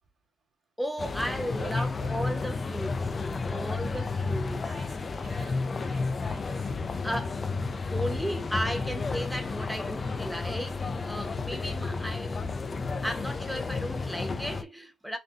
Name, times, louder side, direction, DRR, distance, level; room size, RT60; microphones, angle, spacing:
voice 1, 0.8-3.1 3.5-4.8 7.0-7.4 7.9-12.5 13.0-15.2, equal, ahead, 1.0 m, -35 dB
sound 1, 1.0-14.6, left 4 dB, 35° left, 0.4 m, -32 dB
voice 2, 1.6-2.1 3.5-4.2 4.6-6.7, right 5 dB, 50° right, 2.2 m, -48 dB
6.3 x 2.2 x 2.5 m
cardioid pair, 90°, 0 cm